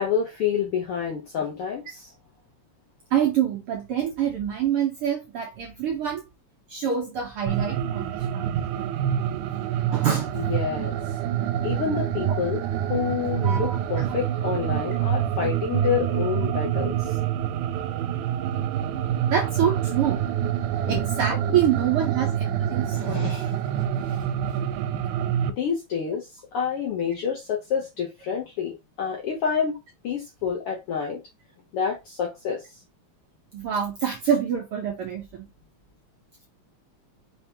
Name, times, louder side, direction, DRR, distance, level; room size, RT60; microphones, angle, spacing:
voice 1, 0.0-2.1 10.3-11.0 11.6-12.6 12.9-17.2 20.9-21.0 21.5-21.6 22.9-24.6 24.9-25.0 25.5-31.2 31.7-32.8, left 7 dB, 70° left, 1.4 m, -28 dB
voice 2, 3.1-6.2 6.7-8.6 9.3-9.4 9.9-10.5 13.4-14.1 19.3-20.2 20.9-23.3 33.5-35.5, right 9 dB, 70° right, 1.4 m, -26 dB
sound 1, 7.5-25.5, right 10 dB, 85° right, 2.0 m, -26 dB
5.5 x 3.3 x 2.8 m
omnidirectional pair, 3.5 m